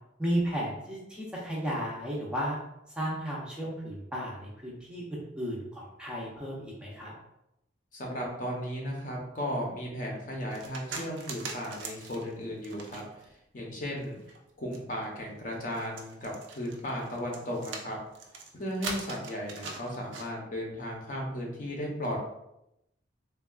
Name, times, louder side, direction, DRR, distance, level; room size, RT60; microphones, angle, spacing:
voice 1, 0.2-2.6 2.9-7.1, equal, 5° right, -5 dB, 0.5 m, -34 dB
voice 2, 7.9-13.3 13.5-14.2 14.6-18.0 18.5-22.3, equal, 45° left, -1 dB, 0.6 m, -35 dB
sound 1, 10.5-13.3 13.9-20.3, right 4 dB, 80° right, 0.5 m, -41 dB
3.4 x 2.3 x 2.3 m, 0.84 s
head